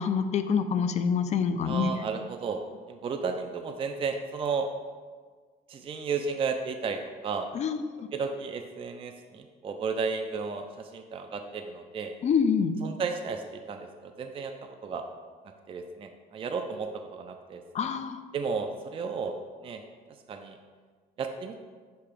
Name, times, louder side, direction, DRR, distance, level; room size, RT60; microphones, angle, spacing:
voice 1, 0.0-1.9 7.5-7.8 12.2-12.8 17.7-18.2, left 6 dB, 40° left, 9 dB, 0.4 m, -26 dB
voice 2, 1.6-2.6 2.9-4.7 5.7-7.5 8.1-12.1 12.8-15.0 15.7-17.6 18.3-19.4 19.6-19.8 20.3-20.6 21.2-21.6, right 5 dB, 35° right, 5 dB, 0.4 m, -33 dB
6.7 x 2.9 x 4.9 m, 1.5 s
cardioid pair, 110°, 17 cm